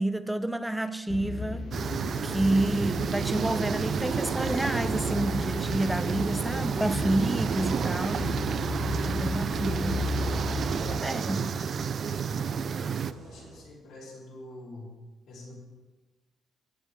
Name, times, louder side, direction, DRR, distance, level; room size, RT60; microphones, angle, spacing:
voice 1, 0.0-2.0 2.2-8.3 9.0-10.1 10.7-11.4, right 1 dB, 5° right, 0.6 m, -29 dB
sound 1, 1.1-11.0, left 4 dB, 55° left, 0.6 m, -35 dB
sound 2, 1.7-13.1, right 7 dB, 55° right, 0.4 m, -30 dB
sound 3, 3.6-13.6, right 3 dB, 80° right, 2.4 m, -51 dB
voice 2, 8.5-9.1 11.0-15.0 15.3-15.5, left 2 dB, 75° left, 3.9 m, -46 dB
13.5 x 8.1 x 3.7 m
cardioid pair, 90°, 0 cm